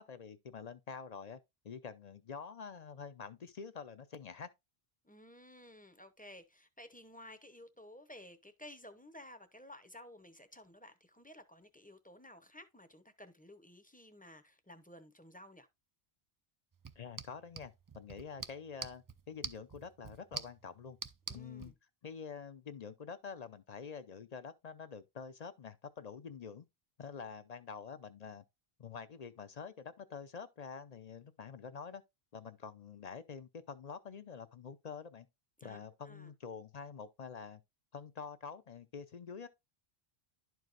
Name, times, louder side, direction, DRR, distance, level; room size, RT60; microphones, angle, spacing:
voice 1, 0.0-1.4 1.6-4.5 17.0-21.0 21.3-21.7 22.0-26.6 27.0-28.4 28.8-32.0 32.3-35.3 35.6-37.6 37.9-39.5, left 6 dB, 50° left, 0.6 m, -47 dB
voice 2, 5.0-15.7 21.3-21.7 35.6-36.3, left 1 dB, 10° left, 0.6 m, -54 dB
sound 1, 16.7-21.7, right 4 dB, 35° right, 0.3 m, -47 dB
11.5 x 4.6 x 2.5 m
omnidirectional pair, 1.0 m